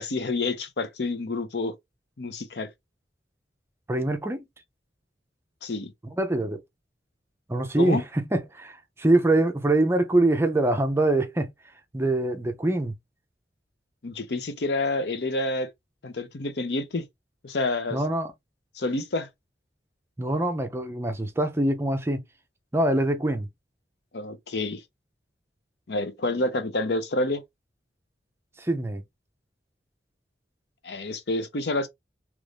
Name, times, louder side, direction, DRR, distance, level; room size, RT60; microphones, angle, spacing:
voice 1, 0.0-1.8 2.2-2.7 5.6-5.9 7.8-8.0 14.0-15.7 16.0-17.0 17.4-18.0 18.8-19.3 24.1-24.8 25.9-27.4 30.8-31.9, left 2 dB, 70° left, 0.6 m, -28 dB
voice 2, 3.9-4.4 6.2-6.6 7.5-11.5 11.9-12.9 17.9-18.3 20.2-22.2 22.7-23.5 28.6-29.0, right 2 dB, 15° right, 0.5 m, -24 dB
3.0 x 2.5 x 3.2 m
head